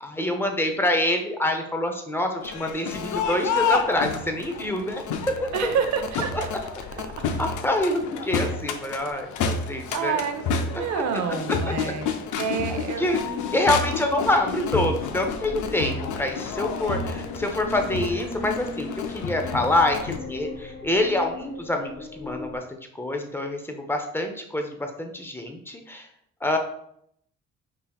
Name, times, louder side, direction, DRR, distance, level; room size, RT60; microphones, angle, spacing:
voice 1, 0.0-5.7 7.4-10.2 10.7-10.9 11.7-11.8 12.7-13.2 13.5-26.1 26.4-26.6, left 1 dB, 5° left, 4 dB, 0.6 m, -26 dB
Crowd, 2.4-20.2, left 5 dB, 80° left, 0.5 m, -30 dB
voice 2, 5.5-6.5 9.9-12.1 12.4-13.1, right 6 dB, 70° right, 6 dB, 0.6 m, -28 dB
sound 1, 13.1-22.6, left 3 dB, 40° left, 0.8 m, -39 dB
5.4 x 2.8 x 2.3 m, 0.71 s
cardioid pair, 90°, 30 cm